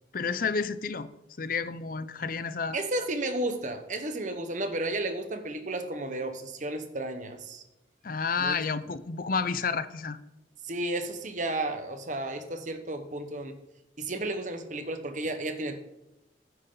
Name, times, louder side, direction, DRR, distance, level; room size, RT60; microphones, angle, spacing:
voice 1, 0.1-1.1 1.4-2.8 8.0-10.2, left 5 dB, 50° left, 14 dB, 0.6 m, -30 dB
voice 2, 2.7-7.6 8.4-8.6 10.6-13.6 14.0-15.8, right 2 dB, 45° right, 8 dB, 1.2 m, -33 dB
15.5 x 9.2 x 3.9 m, 0.96 s
head